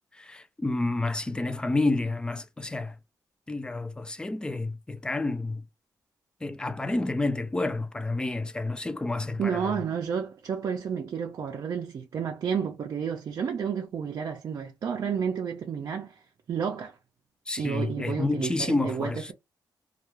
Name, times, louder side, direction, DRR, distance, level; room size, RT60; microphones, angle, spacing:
voice 1, 0.1-3.0 3.5-5.6 6.4-9.8 17.5-19.3, left 2 dB, 10° left, 0.3 m, -29 dB
voice 2, 9.4-16.2 16.5-16.9 17.6-19.3, right 7 dB, 55° right, 0.5 m, -31 dB
2.3 x 2.2 x 3.0 m
cardioid pair, 130°, 7 cm